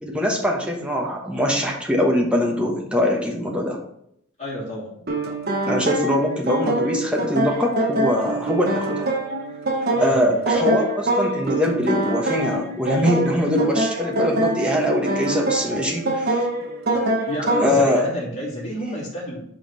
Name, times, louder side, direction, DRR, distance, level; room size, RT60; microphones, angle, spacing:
voice 1, 0.0-3.8 5.6-9.1 10.0-16.4 17.6-18.1, left 1 dB, 5° right, 0 dB, 1.0 m, -22 dB
voice 2, 4.4-5.0 9.9-10.6 17.3-19.4, equal, 35° left, -6 dB, 2.7 m, -30 dB
sound 1, 5.1-17.9, right 2 dB, 45° right, 0.9 m, -24 dB
5.4 x 4.7 x 4.5 m, 0.72 s
head